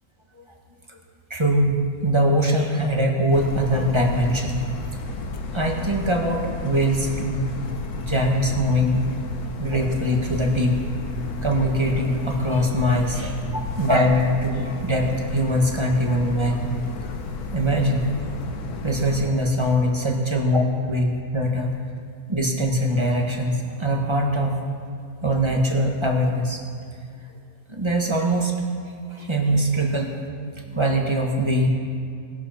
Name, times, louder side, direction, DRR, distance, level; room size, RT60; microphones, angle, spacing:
voice 1, 1.3-1.7 2.0-4.5 5.5-7.4 8.1-9.0 9.6-10.8 11.4-16.8 17.5-18.1 18.8-21.7 22.3-24.6 25.2-26.6 27.7-28.5 29.1-30.2 30.7-31.7, equal, 20° right, 1 dB, 1.4 m, -22 dB
sound 1, 3.3-19.3, left 4 dB, 85° left, 1.5 m, -32 dB
19.0 x 11.5 x 4.4 m, 2.4 s
omnidirectional pair, 1.6 m